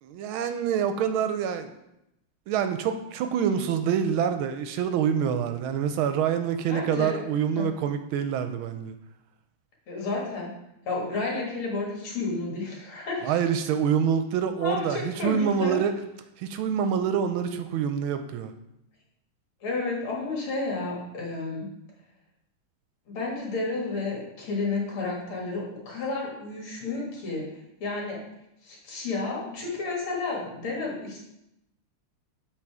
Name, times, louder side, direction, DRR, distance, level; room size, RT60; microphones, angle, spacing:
voice 1, 0.0-1.7 2.5-8.9 13.2-15.9 16.4-18.5, right 8 dB, 75° right, 8 dB, 1.3 m, -26 dB
voice 2, 6.7-7.2 7.6-7.7 9.9-10.5 10.8-13.4 14.6-15.8 19.6-21.7 23.1-27.5 27.8-28.2 28.6-31.2, left 3 dB, 75° left, -2 dB, 2.5 m, -31 dB
7.6 x 4.0 x 4.7 m, 0.85 s
omnidirectional pair, 2.4 m